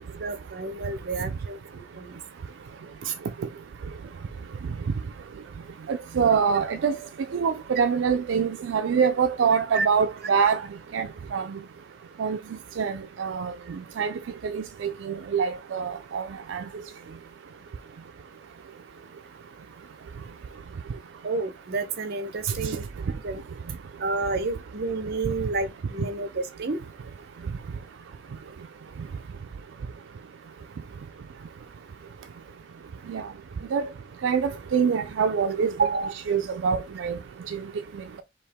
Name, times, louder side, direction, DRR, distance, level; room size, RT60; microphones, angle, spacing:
voice 1, 0.2-2.2 9.7-9.9 21.2-22.8 23.2-23.4 24.0-26.8 35.8-36.2, right 3 dB, 55° right, 0.7 m, -30 dB
voice 2, 5.9-7.0 7.3-10.6 10.9-11.5 12.2-12.4 12.8-13.5 14.0-14.1 14.4-16.6 33.1-33.3 33.7-33.9 34.2-35.7 36.3-37.2, right 6 dB, 80° right, 0.4 m, -25 dB
4.6 x 2.9 x 3.4 m
head